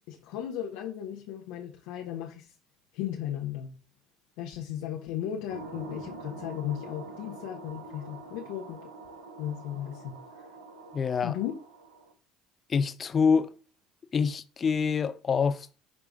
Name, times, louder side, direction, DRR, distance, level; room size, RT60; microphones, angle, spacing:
voice 1, 0.1-2.5 2.9-3.7 4.4-8.9 9.4-10.2 11.2-11.5, left 11 dB, 70° left, 1.0 m, -36 dB
sound 1, 5.5-12.1, right 2 dB, 80° right, 1.6 m, -45 dB
voice 2, 10.9-11.4 12.7-13.5 14.1-15.8, left 6 dB, 35° left, 0.7 m, -26 dB
10.5 x 3.6 x 3.6 m
hypercardioid pair, 65°, 0 cm